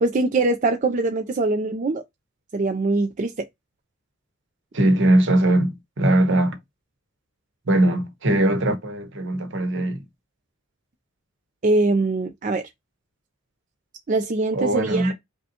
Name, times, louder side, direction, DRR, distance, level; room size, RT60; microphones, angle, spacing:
voice 1, 0.0-2.0 2.5-3.5 11.6-12.7 14.1-15.1, right 2 dB, 40° right, 0.4 m, -22 dB
voice 2, 4.7-6.6 7.7-10.0 14.5-15.1, right 1 dB, 60° right, 0.9 m, -20 dB
5.2 x 2.2 x 2.8 m
head